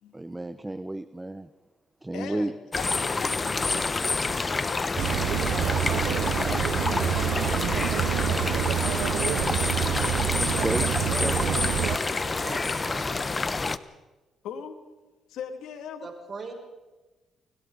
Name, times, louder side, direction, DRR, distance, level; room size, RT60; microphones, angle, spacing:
voice 1, 0.1-1.5 2.0-2.5 9.8-10.9 11.2-11.4, right 1 dB, 10° right, 12 dB, 0.9 m, -32 dB
voice 2, 2.1-6.1 6.8-9.1 11.4-12.8 14.4-14.8 15.3-16.1, left 7 dB, 85° left, 6 dB, 2.5 m, -42 dB
sound 1, 2.7-13.8, left 3 dB, 25° left, 1.0 m, -28 dB
sound 2, 5.0-12.0, right 11 dB, 80° right, 0.6 m, -27 dB
voice 3, 10.7-13.2 16.0-16.5, right 4 dB, 40° right, 1 dB, 6.8 m, -40 dB
30.0 x 21.5 x 4.1 m, 1.2 s
cardioid pair, 90°, 0 cm